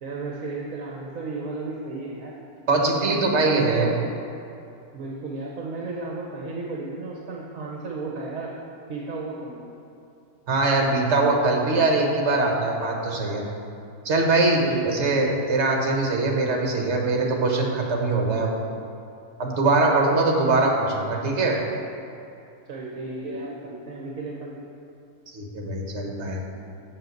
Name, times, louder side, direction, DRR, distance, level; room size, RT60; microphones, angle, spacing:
voice 1, 0.0-2.4 2.8-4.0 4.9-8.5 8.9-9.6 14.6-15.1 22.7-24.6, right 3 dB, 65° right, -2 dB, 1.3 m, -34 dB
voice 2, 2.7-3.9 10.5-13.4 14.0-18.5 19.4-21.6 25.3-26.4, right 2 dB, 50° right, 0 dB, 1.6 m, -22 dB
7.9 x 7.7 x 6.5 m, 2.7 s
omnidirectional pair, 1.6 m